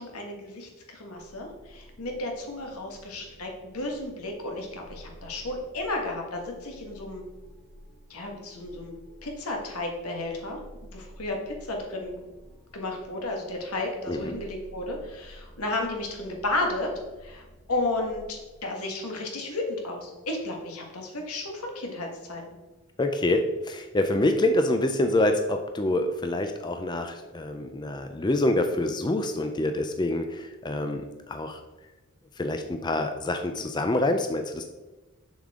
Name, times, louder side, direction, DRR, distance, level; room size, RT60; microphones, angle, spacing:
voice 1, 0.0-7.2 8.1-8.9 9.2-10.6 10.9-12.2 12.7-16.9 17.2-22.4, left 2 dB, 90° left, 1 dB, 1.7 m, -33 dB
sound 1, 1.2-18.3, equal, 5° right, 1.1 m, -51 dB
voice 2, 23.0-31.6 32.4-34.6, left 1 dB, 20° left, 6 dB, 0.4 m, -26 dB
7.1 x 6.7 x 3.7 m, 1.2 s
head